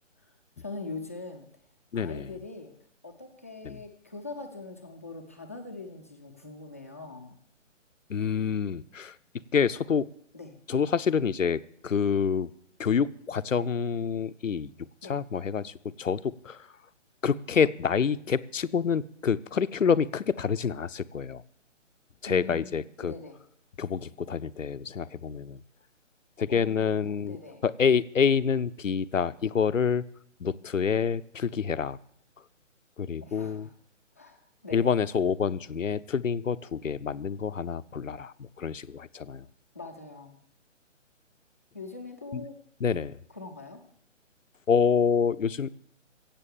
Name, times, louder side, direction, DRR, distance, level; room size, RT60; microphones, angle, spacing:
voice 1, 0.6-1.5 1.9-2.7 3.0-7.4 10.3-10.6 15.0-15.2 22.3-23.4 26.5-27.6 33.2-33.7 34.2-34.4 34.6-34.9 39.7-40.3 41.7-42.6 43.3-43.8, left 3 dB, 10° left, 1 dB, 0.5 m, -42 dB
voice 2, 1.9-2.3 3.6-3.8 8.1-9.1 9.5-10.0 10.7-12.5 12.8-14.7 15.0-16.7 17.2-21.4 22.2-23.1 23.8-25.6 26.4-27.4 27.6-30.0 30.4-32.0 33.0-33.7 34.7-39.4 42.3-42.4 42.8-43.2 44.7-45.7, left 6 dB, 85° left, 15 dB, 0.7 m, -27 dB
16.0 x 8.2 x 7.1 m, 0.66 s
figure-of-eight pair, 145°, 38 cm